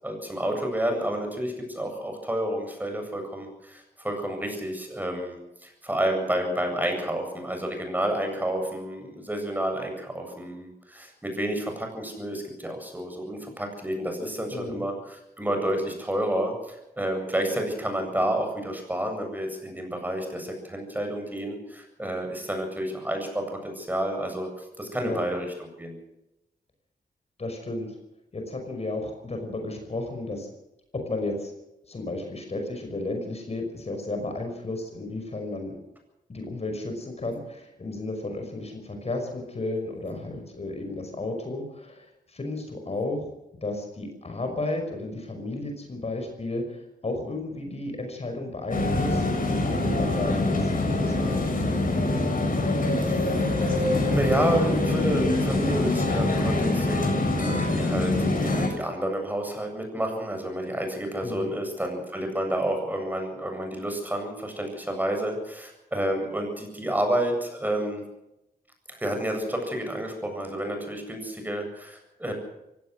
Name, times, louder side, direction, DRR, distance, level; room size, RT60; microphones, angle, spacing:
voice 1, 0.0-25.5 25.8-26.0 53.1-68.0 69.0-72.3, right 1 dB, 10° right, 4 dB, 7.9 m, -30 dB
voice 2, 14.5-14.9 25.0-25.2 27.4-28.0 28.3-30.5 30.9-31.5 31.9-35.8 36.3-43.3 43.6-51.5 61.2-61.5, left 2 dB, 40° left, 4 dB, 5.7 m, -33 dB
sound 1, 48.7-58.7, left 2 dB, 60° left, 7.2 m, -24 dB
23.5 x 17.5 x 6.4 m, 0.89 s
wide cardioid pair, 105°, 16 cm